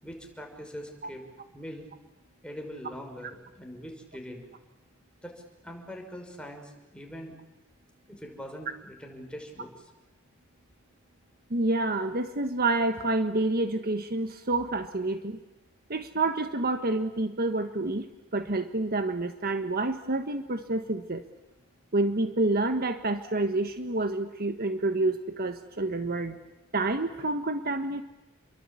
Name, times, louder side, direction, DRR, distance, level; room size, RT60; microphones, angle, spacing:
voice 1, 0.0-1.2 1.5-1.9 2.4-4.4 5.2-7.4 8.1-9.7 23.3-23.4, equal, 5° left, 2 dB, 5.9 m, -42 dB
voice 2, 11.5-15.4 15.9-18.1 18.3-21.2 21.9-26.4 26.7-28.0, right 2 dB, 50° right, 8 dB, 1.4 m, -28 dB
30.0 x 23.5 x 8.5 m, 1.0 s
head